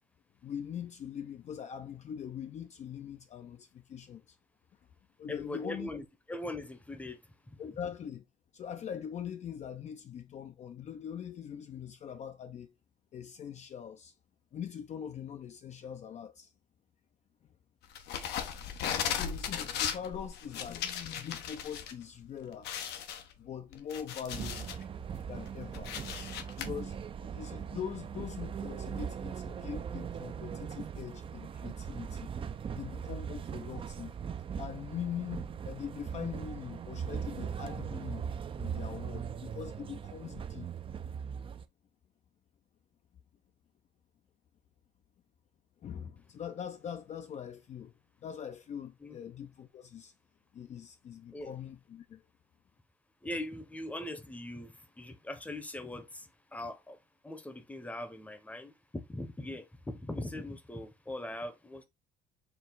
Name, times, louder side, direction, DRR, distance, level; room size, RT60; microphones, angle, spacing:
voice 1, 0.4-4.4 5.2-5.9 7.6-8.2 8.5-12.8 13.1-14.1 14.5-16.5 19.0-22.7 23.4-24.7 25.3-26.0 26.6-32.3 32.7-34.2 34.6-38.2 38.6-40.7 45.8-47.9 48.2-50.1 50.5-52.2, left 8 dB, 45° left, 0.4 m, -42 dB
voice 2, 5.3-7.2 7.5-7.6 49.0-49.2 51.3-51.5 53.2-57.0 57.2-61.8, left 1 dB, 10° left, 0.8 m, -41 dB
sound 1, 18.0-21.9 22.3-22.4 22.6-24.8 25.3-26.7, left 8 dB, 75° left, 0.8 m, -37 dB
sound 2, 24.3-41.6, right 7 dB, 30° right, 0.4 m, -40 dB
4.5 x 2.3 x 3.8 m
cardioid pair, 110°, 17 cm